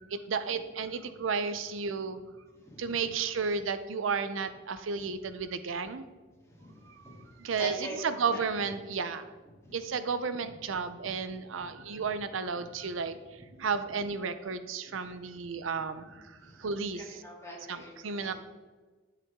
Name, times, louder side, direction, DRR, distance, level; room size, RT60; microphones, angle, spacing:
voice 1, 0.0-2.2 2.8-6.0 7.1-9.2 9.7-13.2 13.6-17.2 17.7-18.3, right 5 dB, 80° right, 11 dB, 0.6 m, -33 dB
voice 2, 2.5-3.1 6.5-8.4 9.6-9.8 10.4-10.5 11.0-11.1 11.6-11.7 12.1-12.2 12.6-12.9 13.4-13.5 14.9-15.0 16.1-16.7 16.9-18.3, equal, 15° left, -4 dB, 2.9 m, -45 dB
11.5 x 6.8 x 3.6 m, 1.3 s
head